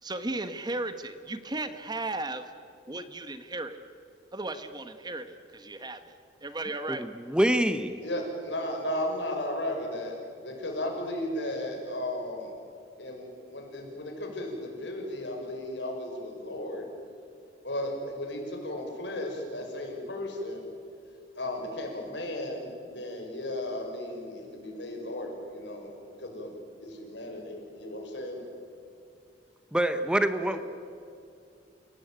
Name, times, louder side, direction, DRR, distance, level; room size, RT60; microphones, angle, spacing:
voice 1, 0.0-2.5 2.9-3.8 4.3-7.1, right 2 dB, 25° right, 10 dB, 1.2 m, -35 dB
voice 2, 7.3-8.0 29.7-30.6, right 1 dB, 5° right, 10 dB, 0.9 m, -25 dB
voice 3, 8.0-10.2 10.4-12.5 13.0-16.9 17.6-20.6 21.4-28.4, left 1 dB, 85° left, 1 dB, 5.7 m, -35 dB
29.5 x 17.0 x 9.0 m, 2.5 s
head